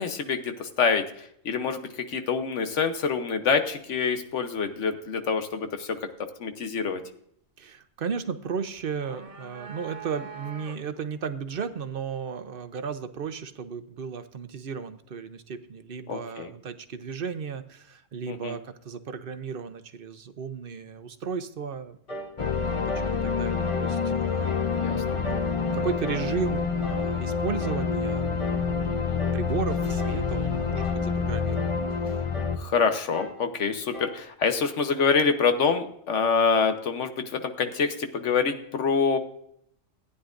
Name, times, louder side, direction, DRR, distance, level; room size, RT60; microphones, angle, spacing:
voice 1, 0.0-6.0 6.4-7.0 16.1-16.5 18.3-18.6 24.7-25.0 28.9-29.2 32.6-39.2, left 5 dB, 80° left, 8 dB, 1.3 m, -26 dB
voice 2, 7.6-22.0 22.6-22.8 23.2-24.0 24.3-24.6 25.1-25.4 25.7-28.4 29.3-31.7, right 6 dB, 55° right, 10 dB, 0.9 m, -34 dB
sound 1, 8.8-11.1, right 5 dB, 80° right, 1.8 m, -43 dB
sound 2, 22.1-22.4 22.9-23.2 23.7-24.0 24.4-24.7 25.2-25.6 26.0-26.3 26.8-27.1 27.6-27.9 28.4-28.7 29.2-29.5 30.0-30.3 30.8-31.1 31.6-31.8 32.3-32.6 33.1-33.4 33.9-34.2, equal, 50° left, 3.4 m, -38 dB
sound 3, 22.4-32.6, left 5 dB, 35° left, 0.6 m, -27 dB
15.5 x 9.7 x 2.5 m, 0.70 s
omnidirectional pair, 1.2 m